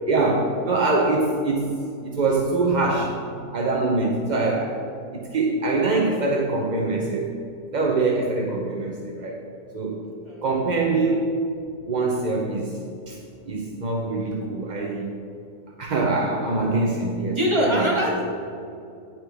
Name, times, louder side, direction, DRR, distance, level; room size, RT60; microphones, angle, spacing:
voice 1, 0.1-3.2 3.5-4.8 5.1-7.3 7.7-9.4 9.7-10.0 10.4-11.2 11.9-12.8 13.1-13.2 13.5-15.1 15.8-17.4 17.7-17.9, right 3 dB, 45° right, 0 dB, 0.6 m, -24 dB
voice 2, 17.4-18.2, equal, 20° right, -4 dB, 1.9 m, -22 dB
9.8 x 8.7 x 3.4 m, 2.6 s
omnidirectional pair, 1.6 m